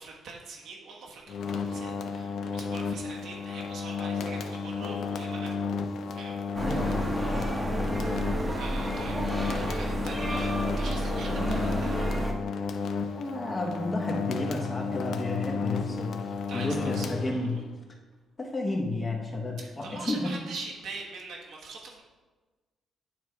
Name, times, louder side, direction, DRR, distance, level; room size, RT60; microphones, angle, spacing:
voice 1, 0.0-5.7 6.0-6.4 8.0-12.1 16.5-17.4 19.6-22.0, right 3 dB, 80° right, -2 dB, 1.2 m, -43 dB
sound 1, 1.3-17.8, left 5 dB, 70° left, 0.5 m, -33 dB
voice 2, 6.5-7.4 13.2-17.6 18.4-20.2, left 2 dB, 30° left, 0 dB, 1.1 m, -32 dB
sound 2, 6.5-12.3, right 1 dB, 20° right, 0.9 m, -30 dB
9.0 x 3.2 x 4.7 m, 1.3 s
cardioid pair, 90°, 0 cm